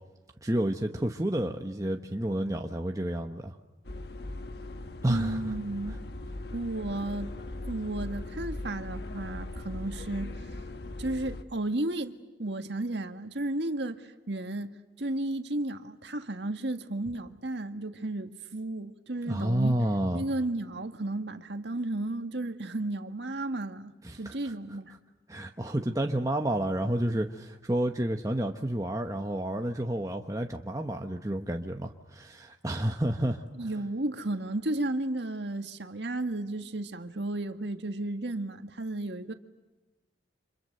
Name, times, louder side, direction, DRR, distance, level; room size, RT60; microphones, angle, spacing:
voice 1, 0.4-3.6 5.0-5.4 5.9-6.0 19.3-20.2 24.0-24.4 25.3-33.4, right 1 dB, 20° right, 1.0 m, -30 dB
sound 1, 3.8-11.4, left 2 dB, 60° left, 1.4 m, -39 dB
voice 2, 5.1-6.0 6.5-7.3 7.7-10.3 11.0-14.7 15.0-19.8 20.1-24.9 33.5-39.3, right 2 dB, 70° right, 1.8 m, -33 dB
30.0 x 27.0 x 6.7 m
head